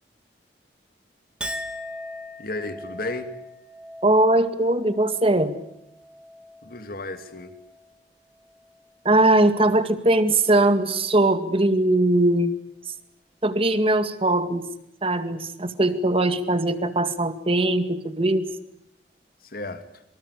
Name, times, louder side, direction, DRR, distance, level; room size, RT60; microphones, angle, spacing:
Chink clink, 1.4-8.0 8.3-8.9, left 1 dB, 5° right, 2.3 m, -40 dB
voice 1, 2.4-3.3 6.6-7.6 19.4-20.0, left 2 dB, 55° left, 9 dB, 2.7 m, -33 dB
voice 2, 4.0-5.6 9.0-12.6 12.9-13.0 13.4-14.7 15.0-18.5, right 2 dB, 35° right, 10 dB, 2.1 m, -20 dB
26.5 x 25.0 x 8.4 m, 0.80 s
head